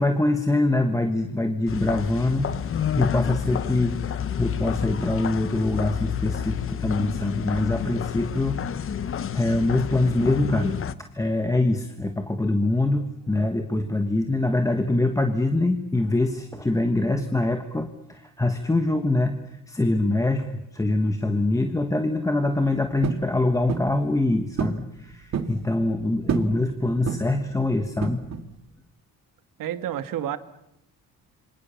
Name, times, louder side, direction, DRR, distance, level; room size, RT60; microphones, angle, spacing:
voice 1, 0.0-8.7 9.3-10.8 11.1-28.2, left 2 dB, 10° left, 6 dB, 1.4 m, -24 dB
sound 1, 1.7-10.9, left 9 dB, 35° left, 1.0 m, -29 dB
sound 2, 23.0-23.3 23.7-24.0 24.6-24.8 25.1-25.6 26.3-26.6 27.0-27.4 28.0-28.5, right 7 dB, 45° right, 2.1 m, -28 dB
voice 2, 29.6-30.4, right 11 dB, 65° right, 11 dB, 1.8 m, -29 dB
28.0 x 25.0 x 7.1 m, 0.84 s
cardioid pair, 155°, 35 cm